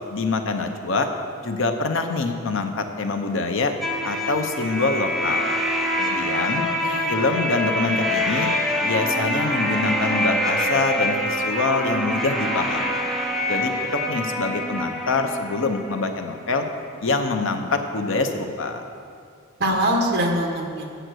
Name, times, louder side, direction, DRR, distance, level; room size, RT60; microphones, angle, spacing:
voice 1, 0.1-1.1 1.4-3.7 4.0-5.6 6.0-6.6 7.1-8.5 8.8-13.0 13.5-16.6 17.0-18.8, left 3 dB, 60° left, 6 dB, 0.7 m, -25 dB
sound 1, 3.8-16.5, equal, ahead, 0.7 m, -25 dB
voice 2, 6.3-7.1 19.6-20.9, right 1 dB, 50° right, 1 dB, 1.3 m, -24 dB
7.9 x 7.7 x 6.2 m, 2.3 s
head